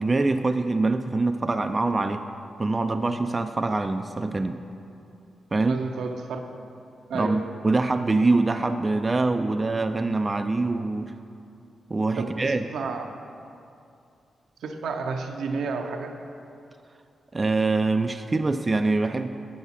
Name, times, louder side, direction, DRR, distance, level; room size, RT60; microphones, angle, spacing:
voice 1, 0.0-2.2 2.6-4.6 5.5-5.8 7.1-11.1 11.9-12.6 17.3-19.3, right 3 dB, 30° right, 7 dB, 0.4 m, -24 dB
voice 2, 5.7-6.4 7.1-7.5 12.2-13.0 14.6-16.2, right 4 dB, 80° right, 4 dB, 0.6 m, -31 dB
8.4 x 7.1 x 4.1 m, 2.6 s
cardioid pair, 55°, 0 cm